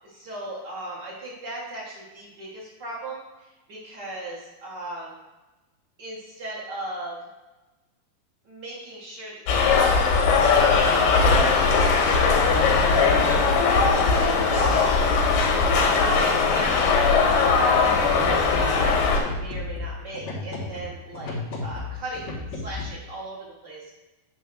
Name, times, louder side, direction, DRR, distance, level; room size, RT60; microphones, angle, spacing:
voice 1, 0.0-5.2 6.0-7.2 8.4-12.7 13.2-13.7 14.2-14.9 15.4-15.7 16.1-23.9, right 1 dB, 80° right, -5 dB, 0.9 m, -37 dB
sound 1, 9.5-19.2, left 4 dB, 90° left, 3.0 m, -19 dB
sound 2, 17.7-22.9, left 2 dB, 60° left, 2.2 m, -34 dB
9.0 x 3.2 x 6.0 m, 1.1 s
omnidirectional pair, 4.2 m